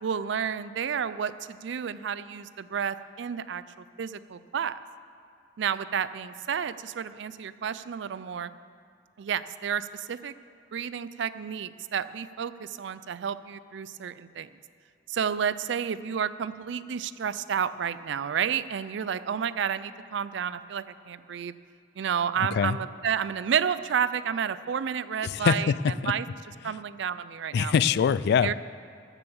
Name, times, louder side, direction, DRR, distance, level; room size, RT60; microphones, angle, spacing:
voice 1, 0.0-3.6 4.0-4.8 5.6-8.5 9.2-10.3 10.7-14.5 15.1-21.5 22.0-25.7 26.0-26.3 26.6-27.7 28.4-28.5, right 7 dB, 70° right, 15 dB, 0.4 m, -31 dB
voice 2, 25.2-26.1 26.6-26.7 27.5-28.5, left 7 dB, 60° left, 18 dB, 0.3 m, -24 dB
14.0 x 6.9 x 7.0 m, 2.3 s
head